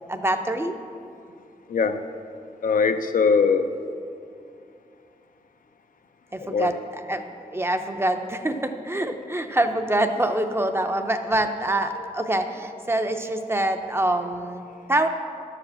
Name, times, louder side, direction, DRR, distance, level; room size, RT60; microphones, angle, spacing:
voice 1, 0.1-0.8 6.3-6.8 7.1-15.1, right 1 dB, 15° right, 7 dB, 0.6 m, -25 dB
voice 2, 1.7-2.0 2.6-3.7 6.4-6.8 12.0-12.5 13.0-13.1, left 5 dB, 70° left, 8 dB, 0.5 m, -23 dB
11.5 x 5.0 x 7.5 m, 2.5 s
wide cardioid pair, 110°, 14 cm